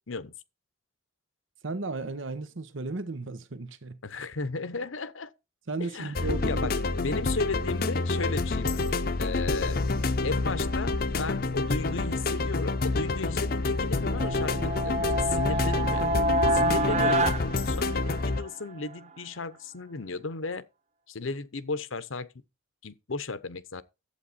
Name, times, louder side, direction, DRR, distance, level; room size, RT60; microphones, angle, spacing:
voice 1, 1.6-4.0 5.7-6.7 16.4-16.8, right 3 dB, 70° right, 1.0 m, -35 dB
voice 2, 4.0-5.3 5.8-6.8 7.0-9.8 10.2-16.1 16.5-17.3 17.7-20.7 21.1-22.3 22.8-23.8, left 3 dB, 75° left, 0.9 m, -35 dB
sound 1, 6.2-18.4, left 3 dB, 45° left, 0.7 m, -28 dB
sound 2, 14.1-18.5, right 1 dB, 35° right, 0.6 m, -27 dB
11.5 x 8.3 x 4.2 m
head